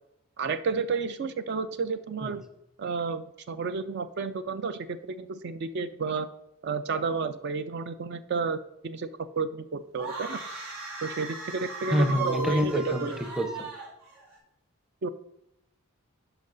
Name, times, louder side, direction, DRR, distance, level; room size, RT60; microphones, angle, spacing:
voice 1, 0.4-2.4 2.8-6.3 6.6-8.6 8.8-9.1 9.4-10.4 11.0-13.2 15.0-15.1, right 5 dB, 50° right, 12 dB, 0.3 m, -31 dB
sound 1, 10.0-14.4, right 2 dB, 65° right, 3.5 m, -37 dB
voice 2, 11.9-13.7, equal, ahead, 6 dB, 0.6 m, -27 dB
11.0 x 5.4 x 3.9 m, 0.83 s
head